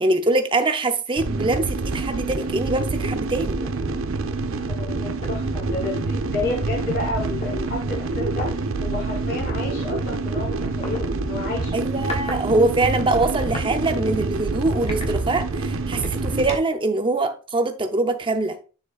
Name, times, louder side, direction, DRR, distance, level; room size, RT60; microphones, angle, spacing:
voice 1, 0.0-3.6 11.7-18.6, right 2 dB, 25° right, 0.7 m, -23 dB
sound 1, 1.2-16.6, right 3 dB, 80° right, 0.6 m, -26 dB
sound 2, 2.4-2.6 3.1-3.2 3.6-3.9 4.9-5.0 5.2-6.6 7.4-7.5 8.3-8.5 9.5-9.6 10.8-11.0 11.7-12.4 12.7-13.7 14.2-14.3 14.8-15.6 16.0-16.8, left 2 dB, 30° left, 1.2 m, -37 dB
voice 2, 4.6-11.8, left 3 dB, 50° left, 3.5 m, -31 dB
7.3 x 6.6 x 2.4 m
head